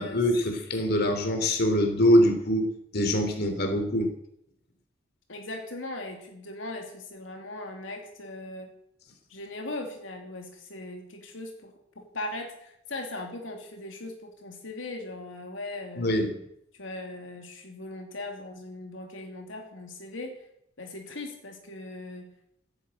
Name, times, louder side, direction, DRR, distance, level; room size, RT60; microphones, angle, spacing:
voice 1, 0.0-4.1 16.0-16.3, equal, 55° left, 5 dB, 3.2 m, -24 dB
voice 2, 5.3-8.7 9.3-16.1 16.7-20.5 20.8-22.3, left 2 dB, 80° left, 3 dB, 2.8 m, -39 dB
16.0 x 9.9 x 8.9 m, 0.76 s
head